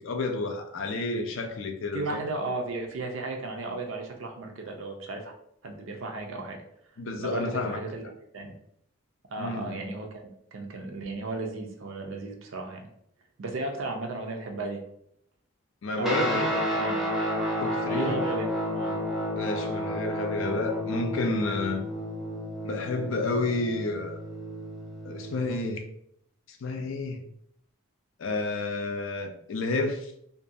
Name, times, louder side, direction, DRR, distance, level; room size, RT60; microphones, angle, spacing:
voice 1, 0.0-2.2 7.0-7.8 9.4-9.8 15.8-16.5 17.6-18.3 19.4-21.8 22.6-24.2 25.0-25.8 26.5-27.2 28.2-30.1, left 3 dB, 65° left, 0.4 m, -30 dB
voice 2, 1.9-5.3 5.6-6.6 7.2-8.0 8.3-8.6 9.3-10.1 10.5-12.9 13.4-14.8 16.0-16.5 16.7-17.0 17.9-19.0, right 3 dB, 70° right, 0.5 m, -34 dB
Guitar, 16.0-25.7, equal, ahead, 0.4 m, -31 dB
2.6 x 2.2 x 2.6 m
head